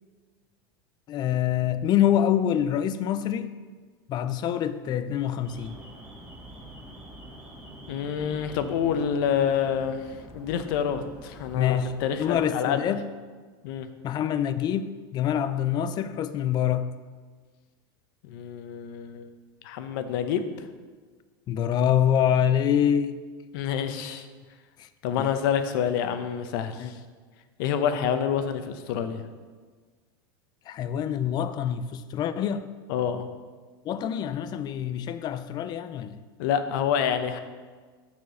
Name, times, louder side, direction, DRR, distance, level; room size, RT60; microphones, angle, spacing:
voice 1, 1.1-3.5 4.1-5.7 11.5-11.9 12.2-13.1 14.0-16.9 21.5-23.2 24.8-24.9 25.2-25.3 26.8-27.0 30.7-32.7 33.8-36.2, left 9 dB, 35° left, 12 dB, 0.5 m, -25 dB
Alarm, 5.4-12.4, equal, 10° right, 2.1 m, -46 dB
voice 2, 7.9-12.8 13.6-13.9 18.2-19.3 19.6-20.5 23.5-24.3 25.0-27.0 27.6-29.2 32.9-33.3 36.4-37.4, left 8 dB, 65° left, 9 dB, 0.9 m, -27 dB
7.1 x 6.1 x 6.3 m, 1.5 s
supercardioid pair, 125°, 12 cm